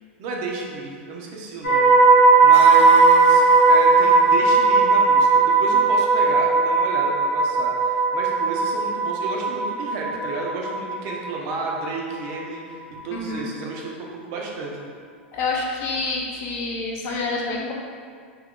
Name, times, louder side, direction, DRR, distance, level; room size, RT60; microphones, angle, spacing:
voice 1, 0.2-1.9 2.2-14.9, right 3 dB, 50° right, -2 dB, 0.6 m, -32 dB
sound 1, 1.6-11.7 12.0-12.3, right 4 dB, 75° left, 1.1 m, -17 dB
voice 2, 13.1-13.5 15.3-17.7, left 3 dB, 45° left, -2 dB, 0.6 m, -27 dB
2.9 x 2.3 x 3.5 m, 2.1 s
hypercardioid pair, 90°, 6 cm